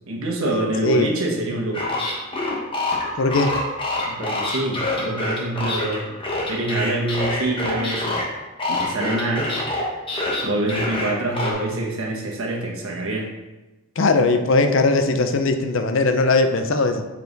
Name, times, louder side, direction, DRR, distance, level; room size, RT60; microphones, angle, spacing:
voice 1, 0.1-1.8 4.1-6.2 6.5-8.2 8.7-9.5 10.4-13.3, right 2 dB, 75° right, -1 dB, 1.2 m, -25 dB
sound 1, 1.7-8.3 8.6-11.5, left 2 dB, 25° left, 1.1 m, -25 dB
voice 2, 3.2-3.5 14.0-17.1, left 3 dB, 65° left, 8 dB, 0.5 m, -19 dB
7.2 x 4.5 x 3.9 m, 1.1 s
head